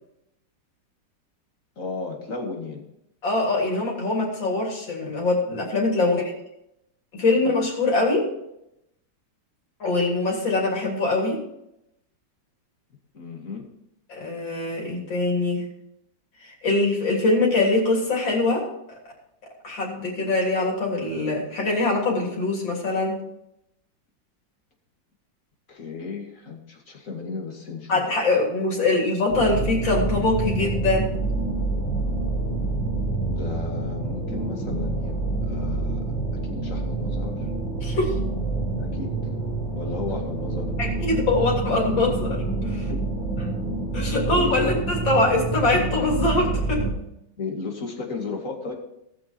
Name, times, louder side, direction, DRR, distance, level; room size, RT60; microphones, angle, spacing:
voice 1, 1.8-2.8 6.0-6.2 7.3-7.5 13.1-13.6 25.7-28.1 33.3-36.0 36.4-37.5 38.6-39.2 39.8-40.7 42.9-43.0 44.3-44.7 47.4-48.7, left 4 dB, 45° left, 1 dB, 2.4 m, -34 dB
voice 2, 3.2-6.2 7.1-8.3 9.8-11.4 14.1-15.6 16.4-18.7 19.6-23.2 27.9-31.2 37.8-38.2 40.8-42.9 43.9-46.8, left 2 dB, 90° left, -1 dB, 3.8 m, -23 dB
sound 1, 29.3-46.9, right 3 dB, 5° left, 3.0 m, -27 dB
18.0 x 6.3 x 4.4 m, 0.82 s
omnidirectional pair, 2.0 m